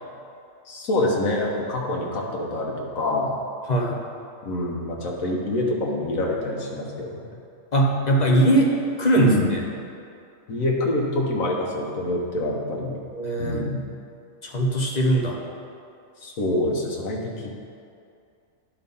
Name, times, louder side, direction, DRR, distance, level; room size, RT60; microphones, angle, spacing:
voice 1, 0.7-3.4 4.4-7.3 9.2-9.6 10.5-13.0 13.4-13.8 16.2-17.5, left 1 dB, 80° left, -2 dB, 1.5 m, -26 dB
voice 2, 3.7-4.0 7.7-8.7 9.0-9.6 13.1-13.6 14.4-15.4, right 1 dB, 35° left, -1 dB, 0.9 m, -20 dB
10.5 x 4.0 x 5.4 m, 2.5 s
omnidirectional pair, 1.4 m